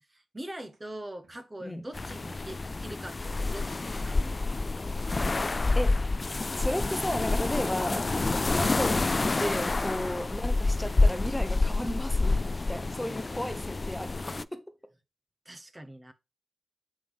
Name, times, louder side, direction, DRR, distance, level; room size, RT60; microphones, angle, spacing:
voice 1, 0.1-4.4 9.9-10.2 15.4-16.1, right 1 dB, 25° right, 0.9 m, -43 dB
sound 1, 0.7-0.8 1.0-1.4 1.7-2.9 3.6-7.5 7.8-10.1 10.4-11.3, right 3 dB, 65° right, 2.7 m, -57 dB
sound 2, 1.9-14.4, left 3 dB, 35° left, 0.3 m, -28 dB
voice 2, 6.6-8.1 8.5-12.4 12.6-14.6, equal, 10° left, 1.0 m, -34 dB
7.0 x 5.0 x 3.5 m
cardioid pair, 65°, 0 cm